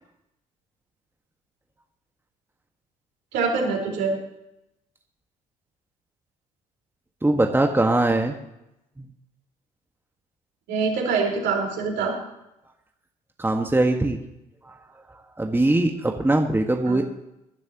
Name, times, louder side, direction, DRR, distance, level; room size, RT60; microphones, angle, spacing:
voice 1, 3.3-4.2 10.7-12.1 16.9-17.0, right 4 dB, 70° right, -1 dB, 4.5 m, -24 dB
voice 2, 7.2-8.4 9.0-9.1 13.4-14.2 14.6-14.7 15.1-17.0, right 2 dB, 10° right, 3 dB, 1.6 m, -21 dB
21.5 x 12.0 x 3.0 m, 0.86 s
hypercardioid pair, 55°, 19 cm